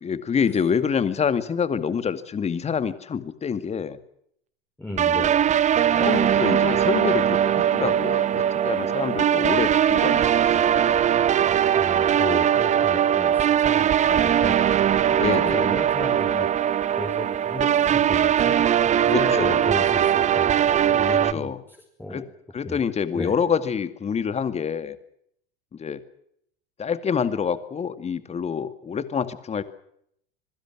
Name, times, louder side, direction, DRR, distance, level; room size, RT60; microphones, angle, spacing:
voice 1, 0.0-4.0 5.1-5.3 6.0-10.3 10.7-11.0 15.1-15.7 19.1-19.6 21.1-21.6 22.1-22.2 22.5-25.0 25.8-26.0 26.8-29.6, left 6 dB, 20° left, 12 dB, 2.2 m, -27 dB
voice 2, 4.8-5.4 11.7-14.6 15.2-15.3 15.5-18.6 18.8-20.6 20.8-21.5 22.0-22.2 22.6-22.8 23.1-23.4, left 1 dB, 5° left, 0 dB, 5.7 m, -34 dB
sound 1, 5.0-21.3, right 9 dB, 25° right, 0.9 m, -20 dB
26.5 x 22.5 x 6.2 m, 0.71 s
figure-of-eight pair, 80°, 29 cm